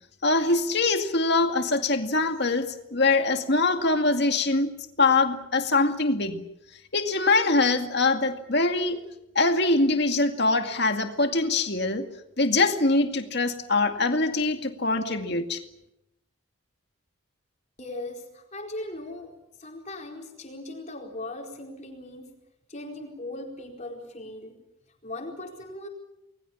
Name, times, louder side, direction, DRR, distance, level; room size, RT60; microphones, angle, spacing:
voice 1, 0.2-4.7 5.0-6.4 6.9-9.0 9.4-12.1 12.4-15.6, left 3 dB, 50° left, 2.2 m, -23 dB
voice 2, 17.8-19.3 19.6-22.3 22.7-24.6 25.0-25.9, left 1 dB, 35° left, 4.5 m, -38 dB
29.5 x 20.5 x 7.3 m
head